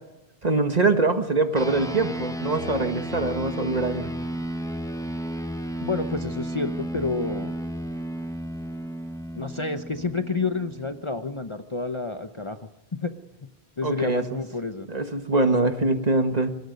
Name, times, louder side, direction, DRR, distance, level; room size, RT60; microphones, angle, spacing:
voice 1, 0.4-4.1 13.8-14.2 14.9-16.5, right 3 dB, 40° right, 7 dB, 1.6 m, -23 dB
sound 1, 1.6-11.3, equal, 5° left, 0.9 m, -33 dB
voice 2, 5.8-7.5 9.4-12.6 12.9-13.1 13.8-14.9, left 3 dB, 30° left, 8 dB, 0.9 m, -29 dB
26.0 x 20.0 x 5.3 m, 0.99 s
omnidirectional pair, 1.0 m